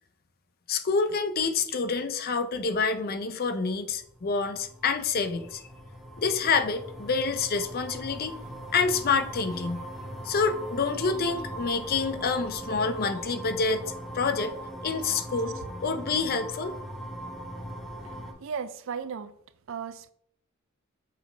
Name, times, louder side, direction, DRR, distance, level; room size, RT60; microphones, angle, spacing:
voice 1, 0.7-5.6 6.2-8.4 8.7-9.9 10.2-13.8 14.1-14.5 14.8-15.5 15.8-16.7, left 4 dB, 45° left, 0.5 m, -27 dB
sound 1, 4.0-18.3, right 1 dB, ahead, 1.0 m, -40 dB
voice 2, 18.4-19.3 19.7-20.1, right 6 dB, 65° right, 0.4 m, -35 dB
6.2 x 4.7 x 3.3 m
head